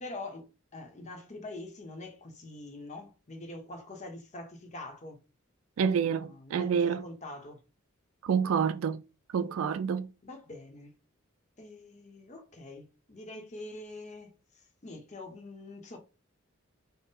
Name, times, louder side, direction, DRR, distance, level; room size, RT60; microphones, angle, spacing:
voice 1, 0.0-5.2 5.9-7.6 10.2-10.9 11.6-14.4 14.8-16.0, left 2 dB, 35° left, 0.8 m, -44 dB
voice 2, 5.8-7.1 8.2-9.0 9.3-10.1, right 7 dB, 75° right, 0.3 m, -28 dB
3.6 x 2.0 x 4.0 m
head